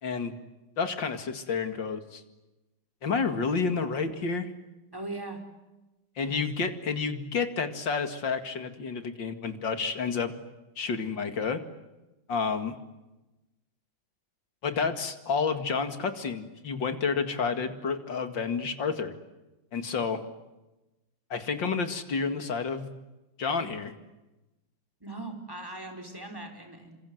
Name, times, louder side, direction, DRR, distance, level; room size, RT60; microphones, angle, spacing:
voice 1, 0.0-0.4 0.8-2.2 3.0-4.5 6.2-10.4 10.8-11.6 12.3-12.8 14.6-19.1 19.7-20.2 21.3-22.9 23.4-23.9, left 5 dB, 70° left, 8 dB, 2.8 m, -30 dB
voice 2, 4.9-5.4 6.2-6.5 25.0-27.0, right 2 dB, 10° right, 3 dB, 4.7 m, -40 dB
28.0 x 26.5 x 7.9 m, 1.0 s
omnidirectional pair, 2.1 m